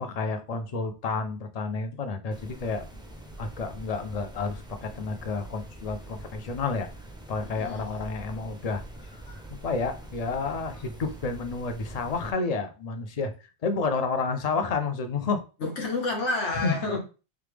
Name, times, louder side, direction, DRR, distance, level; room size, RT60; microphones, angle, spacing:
voice 1, 0.0-2.9 3.4-6.9 7.3-9.2 9.6-13.3 13.6-15.4 16.6-16.7, left 4 dB, 45° left, 7 dB, 0.6 m, -30 dB
sound 1, 2.3-12.3, right 1 dB, 5° right, 0.3 m, -44 dB
voice 2, 7.5-7.9 9.3-9.4 15.6-17.0, left 2 dB, 85° left, 1 dB, 1.5 m, -29 dB
3.6 x 3.3 x 3.4 m, 0.33 s
omnidirectional pair, 1.2 m